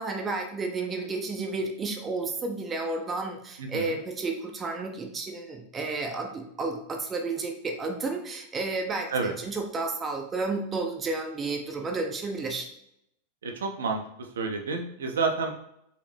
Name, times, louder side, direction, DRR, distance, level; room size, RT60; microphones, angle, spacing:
voice 1, 0.0-12.7, right 3 dB, 20° right, 2 dB, 0.6 m, -32 dB
voice 2, 3.6-4.0 9.1-9.3 13.4-14.0 14.4-15.5, right 4 dB, 65° right, 3 dB, 0.6 m, -29 dB
4.1 x 3.0 x 3.1 m, 0.76 s
figure-of-eight pair, 90°, 0 cm